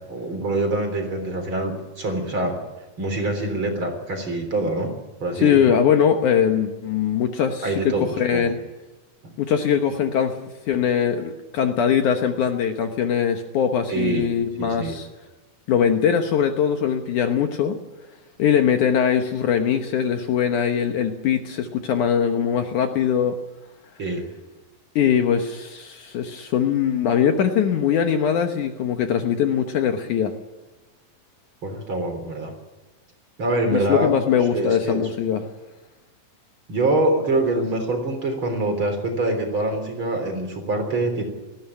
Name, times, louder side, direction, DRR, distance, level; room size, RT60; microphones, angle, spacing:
voice 1, 0.1-2.6 3.0-4.9 5.2-5.8 7.6-8.5 9.2-9.3 13.9-14.3 14.6-15.0 24.0-24.2 31.6-32.5 33.4-34.1 34.5-35.1 36.7-41.2, right 2 dB, 35° right, 4 dB, 4.1 m, -25 dB
voice 2, 5.4-8.6 9.4-15.1 15.7-17.8 18.4-23.4 25.0-30.3 33.7-35.4, left 8 dB, 65° left, 6 dB, 2.3 m, -21 dB
19.0 x 15.0 x 9.9 m, 1.1 s
omnidirectional pair, 4.2 m